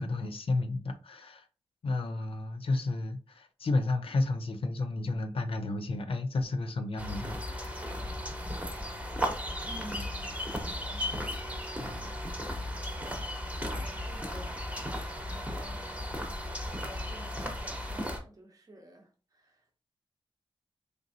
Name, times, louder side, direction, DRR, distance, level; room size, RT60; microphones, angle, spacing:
voice 1, 0.0-1.5 1.8-8.0 11.8-12.1, left 2 dB, 65° left, 0.5 m, -32 dB
sound 1, 7.0-18.2, equal, 15° right, 1.0 m, -35 dB
voice 2, 9.7-11.0 13.7-14.6 15.3-16.1 16.6-19.8, right 1 dB, 35° right, 0.9 m, -50 dB
4.0 x 3.4 x 2.7 m
wide cardioid pair, 85°, 10 cm